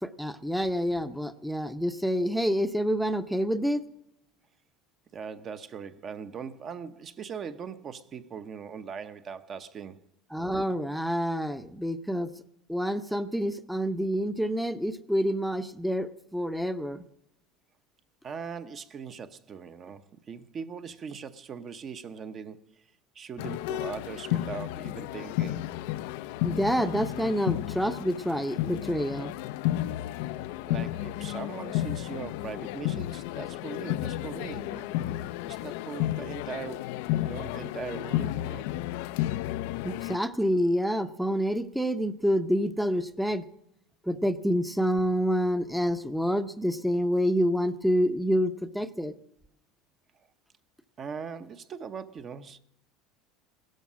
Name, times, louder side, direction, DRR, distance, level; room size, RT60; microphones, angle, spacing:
voice 1, 0.0-3.8 10.3-12.3 12.7-17.0 26.4-29.3 39.8-43.4 44.0-49.1, equal, ahead, 0.7 m, -27 dB
voice 2, 5.1-10.0 18.2-22.9 23.1-25.7 30.7-34.9 35.2-36.9 37.2-38.7 51.0-52.6, right 6 dB, 30° right, 0.8 m, -40 dB
sound 1, 23.4-40.2, left 14 dB, 70° left, 0.5 m, -32 dB
16.5 x 13.0 x 6.2 m
supercardioid pair, 140°, 0 cm